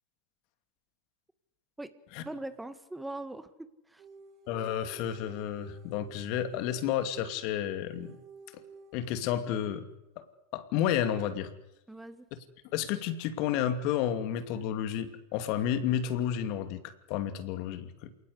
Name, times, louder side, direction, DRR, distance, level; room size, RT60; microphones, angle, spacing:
voice 1, 2.2-4.0 11.9-12.3, right 2 dB, 5° right, 12 dB, 1.8 m, -41 dB
sound 1, 4.0-9.0, right 4 dB, 40° right, 7.0 m, -52 dB
voice 2, 4.5-8.1 8.9-9.9 10.2-10.3 10.5-11.5 12.7-18.1, left 10 dB, 55° left, 10 dB, 2.5 m, -31 dB
28.0 x 19.0 x 8.3 m, 0.91 s
hypercardioid pair, 95°, 0 cm